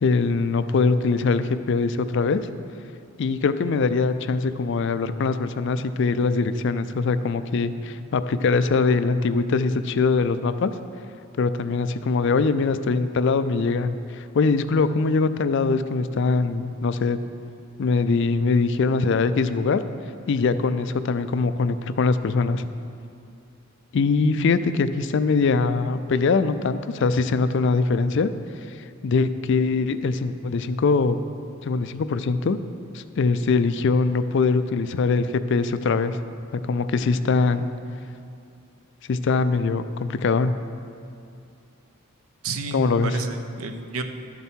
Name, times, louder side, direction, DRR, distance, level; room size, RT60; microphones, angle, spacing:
voice 1, 0.0-2.4 3.2-10.7 11.4-17.2 17.8-19.8 20.3-22.6 23.9-28.3 29.0-31.2 31.6-32.6 32.9-36.2 36.7-37.7 39.1-40.5 42.7-43.1, left 4 dB, 60° left, 12 dB, 0.4 m, -22 dB
voice 2, 42.4-44.0, right 4 dB, 85° right, 7 dB, 0.7 m, -31 dB
12.0 x 6.9 x 4.5 m, 2.5 s
head